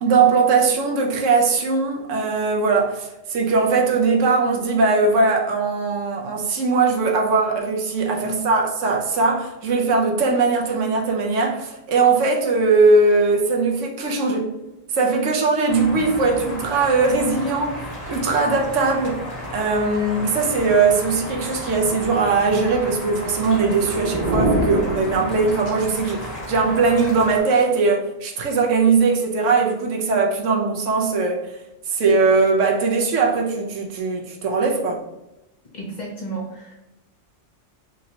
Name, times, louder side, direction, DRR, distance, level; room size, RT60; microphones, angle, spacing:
voice 1, 0.0-14.5 14.9-17.8 18.1-19.2 19.5-31.6 31.9-35.0, right 4 dB, 75° right, 0 dB, 1.0 m, -20 dB
sound 1, 15.7-27.4, left 1 dB, 90° left, 1.9 m, -34 dB
sound 2, 23.3-25.9, right 1 dB, 55° right, 0.4 m, -25 dB
voice 2, 35.7-36.8, right 2 dB, 45° left, -3 dB, 0.6 m, -32 dB
4.1 x 2.7 x 2.8 m, 0.92 s
omnidirectional pair, 1.3 m